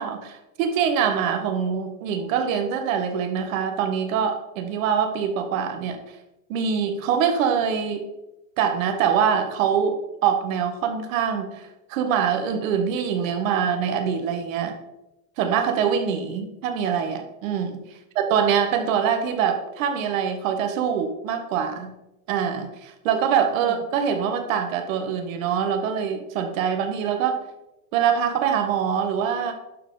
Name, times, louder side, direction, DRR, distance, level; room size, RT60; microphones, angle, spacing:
voice 1, 0.0-6.0 6.5-8.1 8.6-11.6 11.9-14.7 15.4-17.8 18.1-21.9 22.3-27.4 27.9-29.5, right 7 dB, 65° right, 6 dB, 1.4 m, -24 dB
11.5 x 4.7 x 3.9 m, 0.92 s
supercardioid pair, 170°, 42 cm